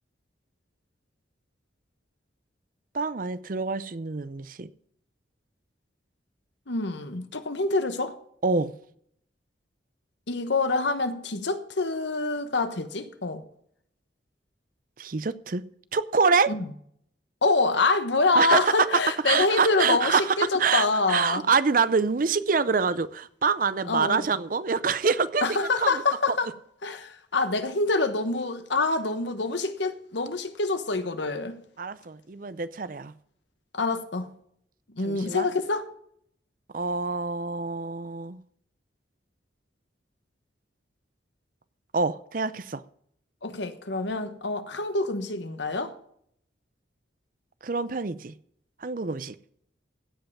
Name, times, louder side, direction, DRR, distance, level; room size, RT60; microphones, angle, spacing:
voice 1, 2.9-4.7 8.4-8.7 15.0-15.6 15.9-16.5 18.3-18.9 19.2-25.5 25.8-26.0 31.8-33.1 35.0-35.5 36.7-38.4 41.9-42.8 47.6-48.3 48.8-49.4, right 5 dB, 45° right, 0.5 m, -26 dB
voice 2, 6.7-8.1 10.3-13.4 16.5-16.6 17.4-21.5 23.9-24.2 25.4-26.5 26.8-31.6 33.7-34.3 34.9-35.9 43.4-45.9, left 3 dB, 70° left, 1.2 m, -26 dB
16.0 x 5.6 x 7.2 m
head